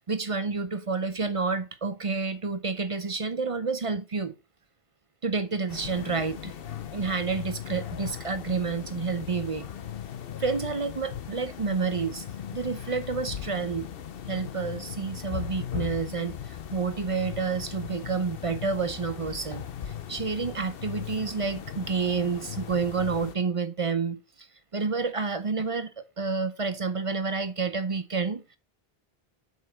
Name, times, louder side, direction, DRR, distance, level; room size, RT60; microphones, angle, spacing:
voice 1, 0.1-4.3 5.2-6.5 6.9-9.7 10.4-12.2 12.5-13.9 14.3-24.2 24.7-28.6, right 4 dB, 40° right, 0.6 m, -29 dB
sound 1, 5.7-23.3, left 9 dB, 65° left, 0.9 m, -38 dB
7.3 x 5.8 x 4.3 m
omnidirectional pair, 1.0 m